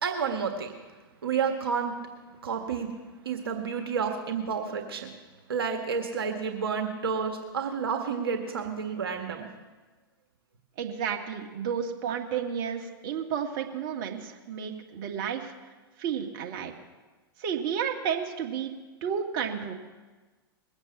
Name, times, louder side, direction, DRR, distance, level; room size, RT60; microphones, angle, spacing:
voice 1, 0.0-0.7 1.2-1.9 2.4-2.9 3.3-5.1 5.5-9.4, right 6 dB, 75° right, 4 dB, 1.7 m, -30 dB
voice 2, 10.8-15.5 16.0-16.7 17.4-18.7 19.0-19.7, right 7 dB, 50° right, 2 dB, 1.8 m, -32 dB
21.0 x 8.1 x 7.3 m, 1.3 s
hypercardioid pair, 105°, 13 cm